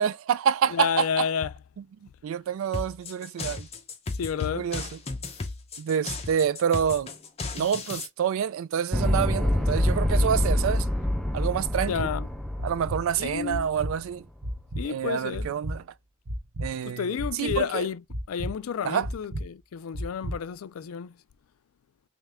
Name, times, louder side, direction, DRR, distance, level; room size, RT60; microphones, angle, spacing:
voice 1, 0.0-1.3 1.8-3.7 4.5-4.9 5.8-7.1 7.5-10.9 11.3-12.1 12.6-14.3 14.8-15.9 16.6-17.9 18.8-19.1, right 8 dB, 70° right, 0.3 m, -27 dB
voice 2, 0.7-1.5 4.2-4.7 11.9-12.3 13.2-13.7 14.8-15.5 16.9-18.0 18.3-21.1, left 7 dB, 80° left, 0.4 m, -30 dB
sound 1, 2.7-8.1, left 3 dB, 30° left, 0.8 m, -35 dB
sound 2, 8.9-14.1, left 1 dB, ahead, 0.5 m, -26 dB
sound 3, 11.9-12.1 12.6-13.0 13.5-13.9 14.4-14.8 15.3-15.8 16.3-16.7 17.2-17.6 18.1-18.5 19.0-19.4 19.9-20.3, right 1 dB, 85° right, 1.2 m, -31 dB
3.6 x 3.1 x 3.4 m
head